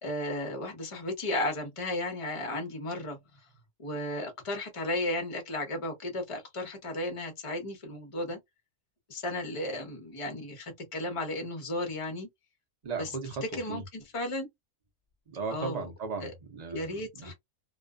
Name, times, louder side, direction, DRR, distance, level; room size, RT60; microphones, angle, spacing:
voice 1, 0.0-3.2 3.8-8.4 9.1-12.3 13.0-13.1 13.5-14.5 15.5-15.9 16.2-16.3 16.7-17.3, left 1 dB, 35° left, 0.5 m, -34 dB
voice 2, 12.8-13.4 13.7-13.8 15.3-17.3, right 4 dB, 45° right, 0.5 m, -36 dB
2.5 x 2.3 x 2.3 m
omnidirectional pair, 1.7 m